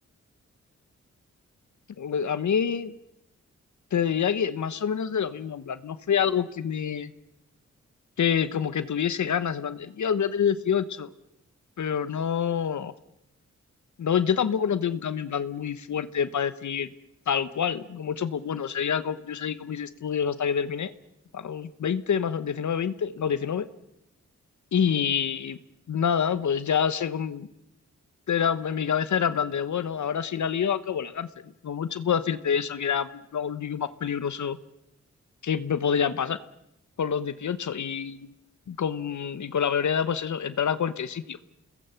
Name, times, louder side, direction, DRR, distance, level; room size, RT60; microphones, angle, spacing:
voice 1, 2.0-2.9 3.9-7.1 8.2-11.1 11.8-12.9 14.0-16.9 17.3-20.9 21.3-23.7 24.7-25.6 25.9-27.5 28.3-31.3 31.6-34.6 35.4-36.4 37.0-38.3 38.7-41.4, left 7 dB, 75° left, 14 dB, 1.2 m, -27 dB
28.0 x 21.0 x 5.9 m, 0.81 s
cardioid pair, 55°, 29 cm